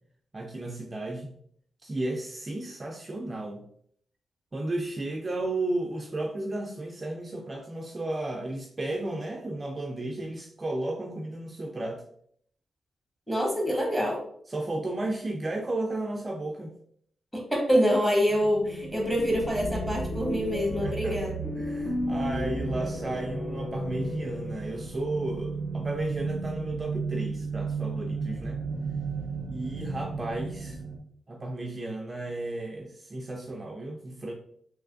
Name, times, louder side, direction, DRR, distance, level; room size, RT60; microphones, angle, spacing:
voice 1, 0.3-1.4 1.8-3.6 4.5-12.0 14.5-16.8 20.8-28.6 29.5-30.8 31.3-34.3, right 2 dB, 30° right, 1 dB, 0.4 m, -33 dB
voice 2, 13.3-14.2 17.3-21.3, equal, ahead, 0 dB, 1.3 m, -26 dB
sound 1, 18.3-31.0, right 4 dB, 90° right, 0.4 m, -35 dB
sound 2, 19.6-27.1, equal, 45° left, 0.9 m, -35 dB
3.2 x 3.0 x 2.5 m, 0.64 s
cardioid pair, 70°, 0 cm